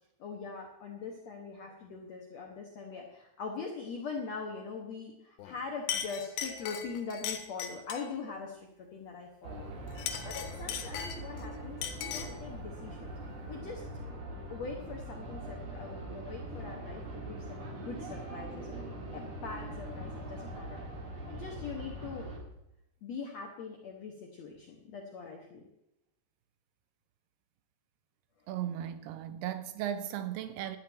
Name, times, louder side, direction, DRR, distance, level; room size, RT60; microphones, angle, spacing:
voice 1, 0.2-9.7 10.2-13.1 13.5-13.8 14.5-20.8 21.3-22.3 23.0-25.7, left 5 dB, 70° left, 1.6 m, -42 dB
Chink clink, 5.4-5.6 5.9-8.1 9.9-11.4 11.8-12.4, left 9 dB, 85° left, 3.3 m, -38 dB
sound 1, 9.4-22.4, right 1 dB, 40° right, 2.3 m, -42 dB
voice 2, 28.5-30.8, right 11 dB, 80° right, 2.6 m, -36 dB
12.0 x 5.9 x 8.9 m
omnidirectional pair, 4.9 m